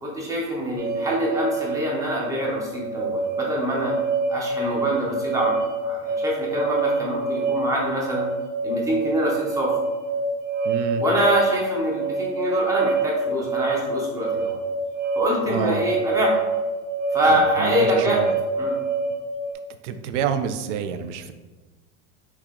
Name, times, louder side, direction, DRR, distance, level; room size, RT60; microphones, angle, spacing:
voice 1, 0.0-3.9 4.3-8.3 8.6-9.7 11.0-14.6 15.2-16.4 17.1-18.2 18.6-18.8, equal, 10° right, -3 dB, 0.5 m, -25 dB
sound 1, 0.8-19.5, right 3 dB, 90° right, 0.8 m, -26 dB
voice 2, 10.6-11.0 15.5-15.8 17.3-18.3 19.8-21.3, right 8 dB, 70° right, 9 dB, 0.5 m, -28 dB
4.8 x 2.8 x 3.6 m, 1.2 s
supercardioid pair, 165°, 38 cm